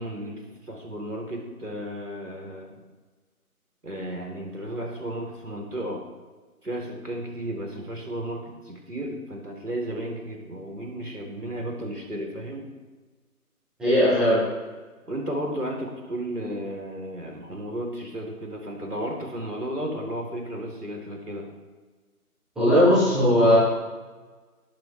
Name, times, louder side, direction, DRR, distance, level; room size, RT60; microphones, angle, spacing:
voice 1, 0.0-2.8 3.8-6.0 6.6-12.7 15.1-21.5, right 1 dB, 90° right, 1 dB, 3.8 m, -33 dB
voice 2, 13.8-14.4 22.6-23.5, equal, ahead, -12 dB, 2.5 m, -18 dB
20.5 x 8.3 x 3.4 m, 1.3 s
figure-of-eight pair, 160°, 45 cm